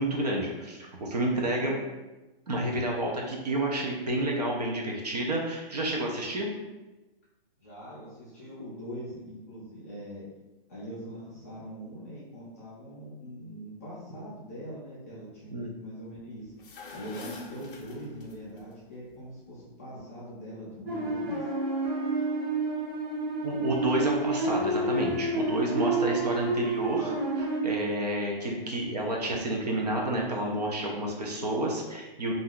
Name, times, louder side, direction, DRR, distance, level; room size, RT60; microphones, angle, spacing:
voice 1, 0.0-1.8 2.5-6.5 15.5-15.7 23.4-32.3, right 1 dB, 45° right, -1 dB, 0.5 m, -30 dB
voice 2, 7.6-10.2 10.7-16.5 16.9-21.4, equal, 15° left, -11 dB, 0.5 m, -42 dB
sound 1, 16.5-18.6, left 3 dB, 60° left, 0.6 m, -44 dB
sound 2, 20.9-27.6, right 2 dB, 85° right, 1.3 m, -29 dB
2.6 x 2.3 x 3.5 m, 1.1 s
hypercardioid pair, 180°, 30 cm